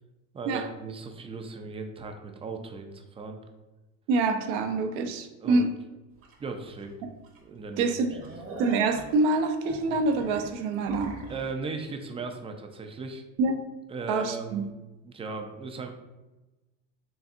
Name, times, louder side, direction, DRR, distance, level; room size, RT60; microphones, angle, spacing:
voice 1, 0.3-3.4 5.4-5.6 6.4-7.0 7.4-7.9 8.2-8.3 11.3-13.2 13.9-14.7 15.0-15.9, right 4 dB, 20° right, 5 dB, 0.4 m, -37 dB
voice 2, 4.1-5.7 7.8-8.1 8.6-11.2 13.4-13.5 14.1-14.6, right 3 dB, 75° right, 6 dB, 0.6 m, -26 dB
sound 1, 6.2-6.4 6.8-6.9 7.2-7.4 7.7-11.5, right 2 dB, 45° right, 1.0 m, -43 dB
4.1 x 3.4 x 2.4 m, 1.1 s
supercardioid pair, 110°, 32 cm